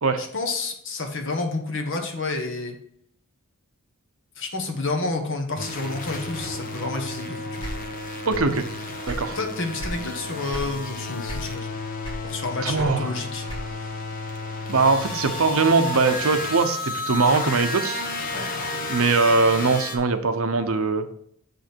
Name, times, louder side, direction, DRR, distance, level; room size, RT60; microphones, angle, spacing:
voice 1, 0.2-2.8 4.4-7.6 9.3-11.8 12.2-13.5 18.3-18.5, left 3 dB, 55° left, 4 dB, 1.3 m, -30 dB
sound 1, 5.6-20.0, left 2 dB, 40° left, 1.3 m, -32 dB
sound 2, 7.6-8.6 8.9-10.0 10.5-10.8 11.2-11.7 12.0-13.9, equal, 20° left, 2.4 m, -35 dB
voice 2, 8.3-8.7 9.1-9.4 12.6-13.1 14.7-18.1 18.9-21.1, right 4 dB, 65° right, 8 dB, 0.8 m, -21 dB
7.4 x 5.4 x 4.5 m, 0.69 s
head